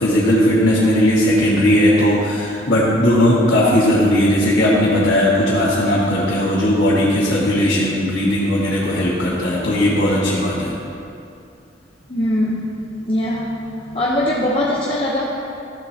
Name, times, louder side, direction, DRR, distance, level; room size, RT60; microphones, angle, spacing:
voice 1, 0.0-10.7, left 1 dB, 75° left, -8 dB, 1.6 m, -17 dB
voice 2, 12.1-12.7 13.1-13.5 13.9-15.2, left 1 dB, 30° left, -5 dB, 0.8 m, -21 dB
13.5 x 7.5 x 2.8 m, 2.6 s
head